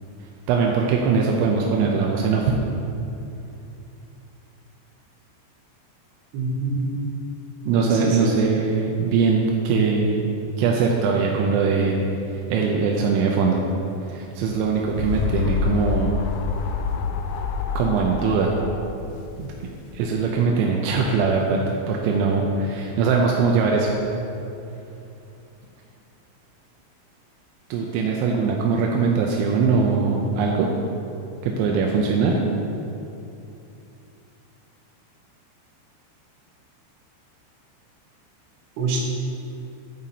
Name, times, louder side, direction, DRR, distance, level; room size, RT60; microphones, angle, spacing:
voice 1, 0.5-2.6 7.7-10.2 10.6-11.9 12.3-13.6 14.1-16.1 17.8-18.5 19.4-19.5 19.9-21.6 21.9-23.9 27.7-30.7 31.4-32.3, right 5 dB, 85° right, -1 dB, 3.0 m, -21 dB
voice 2, 6.3-7.0 7.7-8.3 38.8-39.0, right 2 dB, 70° right, -3 dB, 3.3 m, -25 dB
sound 1, 14.5-20.1, left 5 dB, 85° left, 2.5 m, -27 dB
9.9 x 8.8 x 2.8 m, 2.7 s
omnidirectional pair, 5.3 m